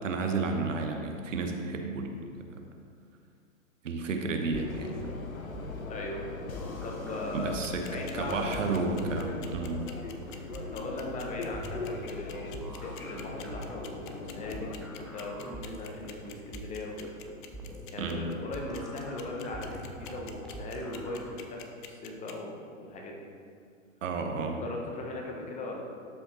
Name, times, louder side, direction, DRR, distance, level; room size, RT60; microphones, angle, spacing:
voice 1, 0.0-2.6 3.8-5.0 7.3-7.9 8.1-9.8 18.0-18.3 24.0-24.6, right 3 dB, 70° right, 4 dB, 1.2 m, -32 dB
sound 1, 4.5-14.8, left 3 dB, 85° left, 1.1 m, -40 dB
sound 2, 4.5-21.3, equal, ahead, 0.6 m, -45 dB
voice 2, 5.9-6.2 6.8-7.6 7.9-9.1 10.7-12.7 13.0-14.7 15.0-17.1 17.9-21.6 21.9-23.3 24.6-25.8, left 2 dB, 20° left, 0 dB, 1.2 m, -39 dB
sound 3, 7.6-22.3, left 11 dB, 40° left, 0.8 m, -47 dB
12.5 x 5.6 x 4.2 m, 2.3 s
hypercardioid pair, 120°, 40 cm